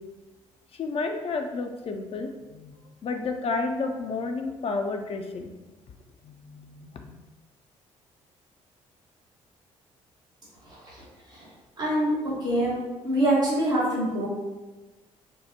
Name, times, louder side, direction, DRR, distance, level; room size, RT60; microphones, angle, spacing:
voice 1, 0.7-5.5 6.2-7.1, left 3 dB, 35° left, 4 dB, 0.4 m, -31 dB
voice 2, 11.8-12.1 12.4-12.8 13.0-14.3, right 1 dB, 80° right, -13 dB, 1.2 m, -24 dB
5.1 x 2.0 x 2.8 m, 1.2 s
figure-of-eight pair, 45°, 17 cm